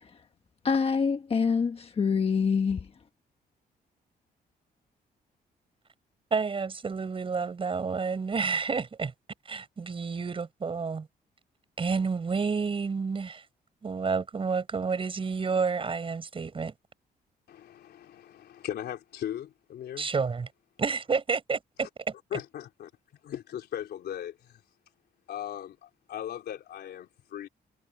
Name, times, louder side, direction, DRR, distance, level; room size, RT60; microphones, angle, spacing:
voice 1, 0.6-2.9, left 5 dB, 35° left, 1.3 m, -25 dB
voice 2, 6.3-9.1 9.4-11.1 11.8-13.4 13.8-16.7 20.0-20.5 20.8-22.1, right 5 dB, 30° right, 6.2 m, -30 dB
voice 3, 17.5-20.1 21.8-21.9 22.3-22.9 23.2-24.6 25.3-27.5, left 10 dB, 80° left, 3.6 m, -38 dB
cardioid pair, 130°, 17 cm